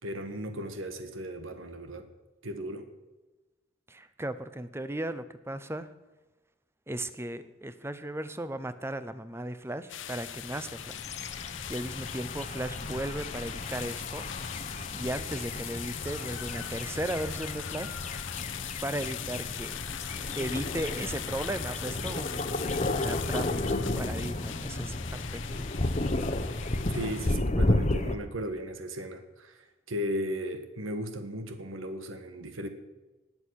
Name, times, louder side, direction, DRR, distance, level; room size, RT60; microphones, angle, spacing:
voice 1, 0.0-2.1 2.4-2.9 26.9-32.7, equal, 80° right, 8 dB, 1.6 m, -36 dB
voice 2, 3.9-5.9 6.9-11.1 11.7-14.3 14.9-18.0 18.8-19.8 20.3-25.4, right 1 dB, 15° right, 12 dB, 0.7 m, -36 dB
sound 1, 9.4-17.4, right 3 dB, 65° right, 6.2 m, -57 dB
sound 2, 9.9-27.4, left 11 dB, 65° left, 0.7 m, -41 dB
sound 3, 10.4-28.2, left 1 dB, 35° left, 1.0 m, -33 dB
19.5 x 7.8 x 6.5 m, 1.1 s
head